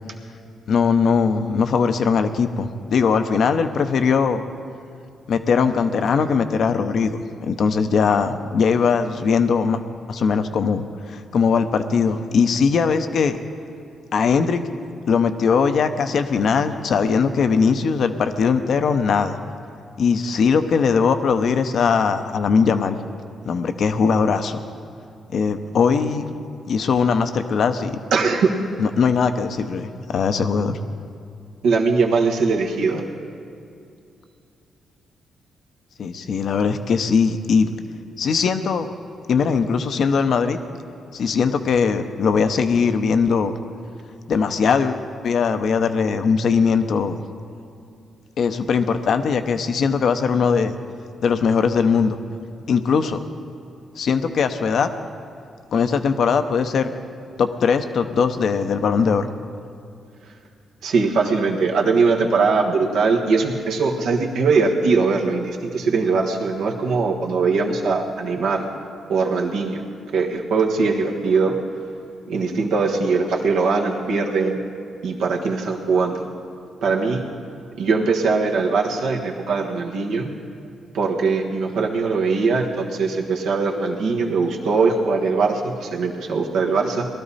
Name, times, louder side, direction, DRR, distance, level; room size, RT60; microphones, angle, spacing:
voice 1, 0.7-4.4 5.3-9.8 10.1-13.4 14.1-14.6 15.1-19.4 20.0-23.0 23.4-24.6 25.3-26.2 26.7-28.0 28.8-30.8 36.0-37.7 38.2-38.9 39.3-40.6 41.1-43.5 44.3-47.2 48.4-50.8 51.2-52.2 52.7-53.2 54.0-54.9 55.7-56.9 57.4-59.3, left 5 dB, 65° left, 9 dB, 0.8 m, -20 dB
voice 2, 28.1-28.5 31.6-33.0 60.8-68.7 69.1-69.8 70.1-71.6 72.3-74.6 75.0-76.2 76.8-77.2 77.8-80.3 80.9-87.1, right 4 dB, 80° right, 0 dB, 1.4 m, -21 dB
19.5 x 12.5 x 4.2 m, 2.5 s
supercardioid pair, 55°, 0 cm